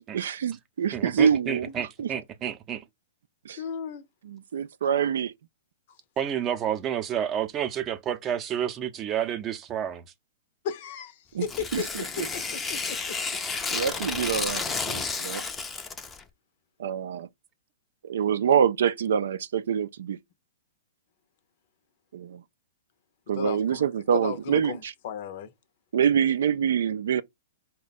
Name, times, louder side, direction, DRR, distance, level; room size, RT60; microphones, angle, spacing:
voice 1, 0.1-1.7 2.0-2.1 3.4-3.6 4.2-5.3 11.3-11.5 11.7-12.3 13.7-15.4 16.8-17.3 18.0-20.2 22.1-22.4 23.3-24.9 25.9-27.2, right 8 dB, 70° right, 0.4 m, -26 dB
voice 2, 0.9-2.8 6.2-10.0, right 9 dB, 30° right, 0.6 m, -30 dB
voice 3, 3.6-4.0 10.6-11.9 12.2-13.2 14.1-14.2 23.4-23.8 24.1-25.5, left 7 dB, 55° left, 0.7 m, -35 dB
Tearing, 11.4-16.2, left 4 dB, 15° left, 0.5 m, -32 dB
5.0 x 2.2 x 4.1 m
hypercardioid pair, 115°, 0 cm